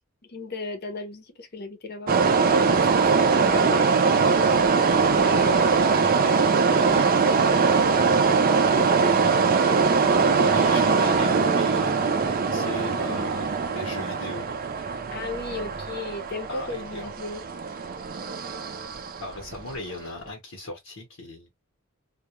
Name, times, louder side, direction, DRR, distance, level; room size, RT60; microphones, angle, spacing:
voice 1, 0.3-2.2 2.5-3.0 3.5-3.9 5.0-5.7 6.0-6.4 6.7-8.2 9.6-10.3 12.5-13.3 15.1-17.4, left 3 dB, 50° left, 0.7 m, -36 dB
sound 1, 2.1-19.7, right 5 dB, 40° right, 0.4 m, -22 dB
voice 2, 4.4-4.8 10.1-14.5 16.5-17.1 19.2-21.5, left 2 dB, 85° left, 0.9 m, -37 dB
2.2 x 2.2 x 2.9 m
head